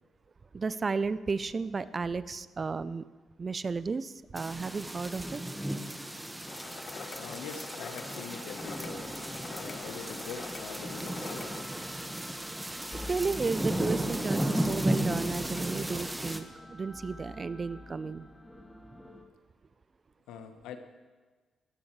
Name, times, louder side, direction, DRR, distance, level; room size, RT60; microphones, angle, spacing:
voice 1, 0.5-3.0 3.4-5.4 12.9-18.3, right 4 dB, 40° right, 16 dB, 0.7 m, -33 dB
sound 1, 4.3-16.4, right 1 dB, 10° right, 1.6 m, -34 dB
sound 2, 6.5-11.6, left 5 dB, 55° left, 1.3 m, -44 dB
voice 2, 7.2-9.1 9.6-11.6 20.3-20.8, left 6 dB, 80° left, 7 dB, 1.3 m, -44 dB
sound 3, 8.5-19.2, left 1 dB, 15° left, 2.4 m, -49 dB
21.5 x 15.5 x 3.3 m, 1.4 s
hypercardioid pair, 45°, 0 cm